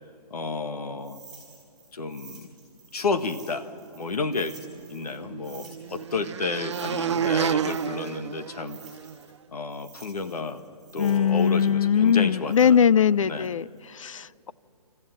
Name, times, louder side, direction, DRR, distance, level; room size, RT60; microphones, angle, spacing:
voice 1, 0.3-1.2 1.9-2.5 2.9-3.7 3.9-4.6 4.9-8.8 9.5-10.6 10.9-12.8 13.2-13.5, left 4 dB, 75° left, 9 dB, 1.6 m, -31 dB
sound 1, 1.0-5.2 5.4-9.4 9.7-13.8, right 4 dB, ahead, 5.6 m, -51 dB
sound 2, 4.5-9.1, right 8 dB, 45° right, 0.6 m, -30 dB
voice 2, 11.0-14.5, left 7 dB, 55° left, 19 dB, 0.4 m, -21 dB
26.5 x 14.0 x 9.0 m, 2.8 s
hypercardioid pair, 170°, 20 cm